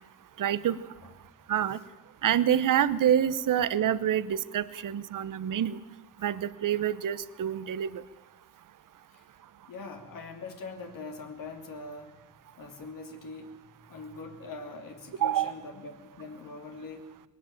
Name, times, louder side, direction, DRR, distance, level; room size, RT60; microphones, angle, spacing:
voice 1, 0.4-0.8 1.5-1.8 2.2-5.8 6.2-8.0 15.2-15.5, right 10 dB, 70° right, 16 dB, 0.9 m, -27 dB
voice 2, 1.4-1.8 9.1-9.2 9.7-12.2 12.6-13.6 13.9-17.2, left 3 dB, 80° left, 3 dB, 3.0 m, -43 dB
21.0 x 18.0 x 8.9 m, 1.1 s
cardioid pair, 105°, 33 cm